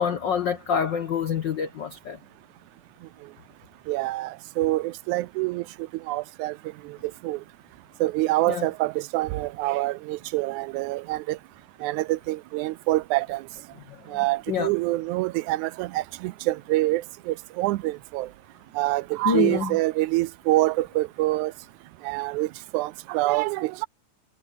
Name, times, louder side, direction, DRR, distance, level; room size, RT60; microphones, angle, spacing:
voice 1, 0.0-2.2 8.5-8.7 13.9-14.0 14.5-14.7 19.2-19.8, left 6 dB, 60° left, 1.2 m, -26 dB
voice 2, 3.9-5.6 6.1-6.6 6.9-7.0 7.2-7.4 8.0-11.4 11.8-13.4 14.1-18.3 18.8-21.5 22.0-23.9, right 18 dB, 85° right, 2.0 m, -26 dB
omnidirectional pair, 3.4 m